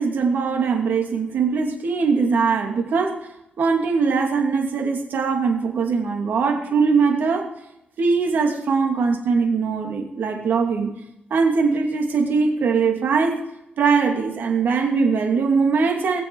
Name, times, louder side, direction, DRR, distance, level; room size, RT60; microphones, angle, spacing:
voice 1, 0.0-3.3 3.6-7.5 8.0-10.9 11.3-13.4 13.8-16.2, right 5 dB, 80° right, 2 dB, 2.6 m, -21 dB
20.5 x 7.1 x 4.8 m, 0.84 s
cardioid pair, 100°, 3 cm